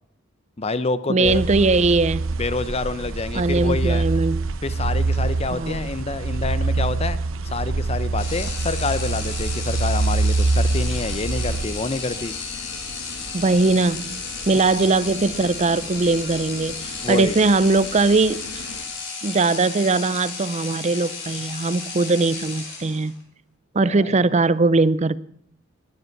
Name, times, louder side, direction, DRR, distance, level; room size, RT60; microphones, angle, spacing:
voice 1, 0.6-1.4 2.4-4.1 4.6-7.2 7.4-12.3 17.0-17.4 23.8-24.2, left 3 dB, 30° left, 0.7 m, -27 dB
voice 2, 1.1-2.2 3.3-4.4 5.5-5.9 13.3-18.6 19.2-23.1 23.7-25.2, right 3 dB, 35° right, 0.5 m, -20 dB
sound 1, 1.2-11.7, right 3 dB, 85° right, 0.8 m, -24 dB
sound 2, 8.2-23.2, left 4 dB, 65° left, 5.0 m, -33 dB
sound 3, 8.8-18.8, left 2 dB, 90° left, 1.7 m, -42 dB
20.0 x 9.7 x 5.9 m
head